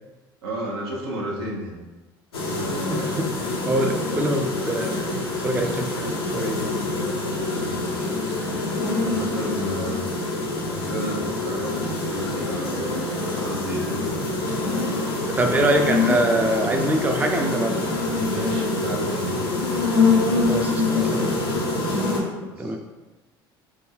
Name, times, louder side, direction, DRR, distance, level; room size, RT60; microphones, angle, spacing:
voice 1, 0.4-1.8 7.5-7.9 8.4-8.5 9.0-10.1 10.6-14.5 18.3-19.4 21.1-21.7 22.4-22.8, right 1 dB, 80° right, -2 dB, 0.7 m, -33 dB
sound 1, 2.3-22.2, left 3 dB, 90° left, 0.6 m, -25 dB
voice 2, 2.9-3.3 3.7-5.0 5.4-6.9 15.3-17.8 20.5-21.4 22.6-22.8, right 1 dB, 15° right, 3 dB, 0.4 m, -24 dB
3.3 x 2.1 x 3.5 m, 1.1 s
hypercardioid pair, 70°, 13 cm